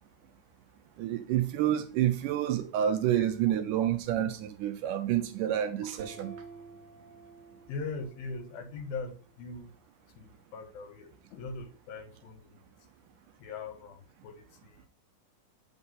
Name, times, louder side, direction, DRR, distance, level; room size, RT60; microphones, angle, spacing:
voice 1, 1.0-6.3, right 11 dB, 80° right, 2.0 m, -28 dB
sound 1, 6.0-8.7, right 4 dB, 55° right, 2.0 m, -50 dB
voice 2, 7.7-9.7 10.1-12.7 13.4-14.9, left 4 dB, 85° left, 3.1 m, -41 dB
7.8 x 4.4 x 5.5 m
omnidirectional pair, 4.1 m